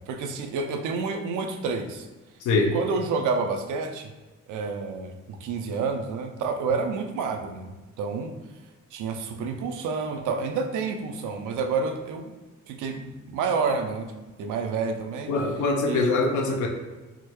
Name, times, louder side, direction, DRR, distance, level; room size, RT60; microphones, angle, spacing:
voice 1, 0.0-2.1 2.7-4.1 4.5-8.3 8.9-12.3 12.7-14.1 14.4-15.3 15.8-16.0, right 4 dB, 80° right, 5 dB, 0.5 m, -29 dB
voice 2, 15.3-16.7, left 3 dB, 80° left, 2 dB, 0.6 m, -23 dB
3.6 x 2.1 x 3.0 m, 1.2 s
cardioid pair, 90°, 30 cm